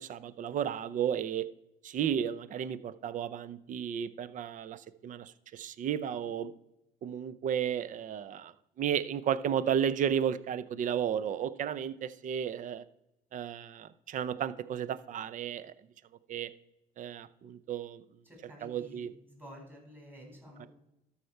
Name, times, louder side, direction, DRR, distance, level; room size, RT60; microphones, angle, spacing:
voice 1, 0.0-1.4 1.8-6.5 7.0-12.8 13.3-15.7 16.3-16.5 17.0-18.0 18.6-19.1 20.6-20.7, right 9 dB, 50° right, 15 dB, 0.6 m, -33 dB
voice 2, 18.2-19.0 19.3-20.7, equal, 10° right, -1 dB, 4.3 m, -51 dB
13.0 x 5.7 x 4.5 m, 0.89 s
cardioid pair, 110°, 17 cm